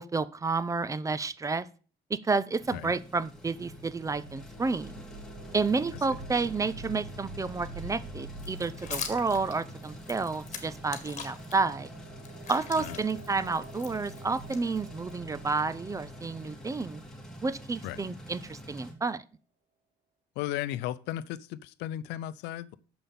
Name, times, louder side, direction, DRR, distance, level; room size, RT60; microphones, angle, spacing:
voice 1, 0.0-1.7 2.1-5.0 5.5-11.9 12.5-17.0 17.4-19.2, right 4 dB, 20° right, 17 dB, 0.5 m, -30 dB
sound 1, 2.6-18.9, right 1 dB, 5° left, 3.2 m, -47 dB
sound 2, 3.2-17.8, right 1 dB, 55° right, 2.3 m, -47 dB
sound 3, 8.4-11.5 12.0-15.1, left 7 dB, 45° left, 1.8 m, -42 dB
voice 2, 20.4-22.8, left 13 dB, 90° left, 17 dB, 0.5 m, -35 dB
6.9 x 5.7 x 7.0 m, 0.39 s
cardioid pair, 110°, 17 cm